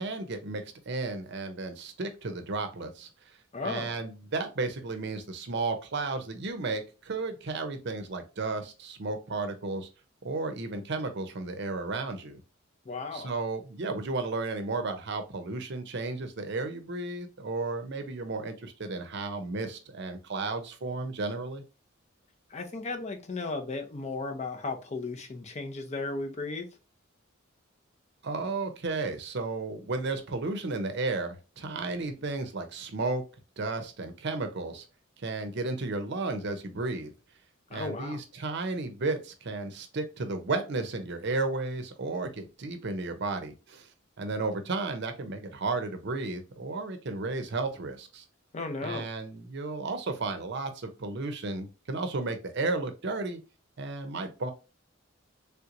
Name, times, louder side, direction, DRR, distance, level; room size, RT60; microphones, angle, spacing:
voice 1, 0.0-3.1 3.6-9.9 10.2-12.4 13.1-21.6 28.2-33.2 33.6-34.8 35.2-37.1 37.7-43.9 44.2-48.2 48.8-53.4 53.8-54.5, right 3 dB, 55° right, 0.6 m, -33 dB
voice 2, 3.5-4.0 12.9-13.3 22.5-26.7 37.7-38.2 48.5-49.1, left 3 dB, 35° left, 0.6 m, -35 dB
3.4 x 2.9 x 2.5 m
head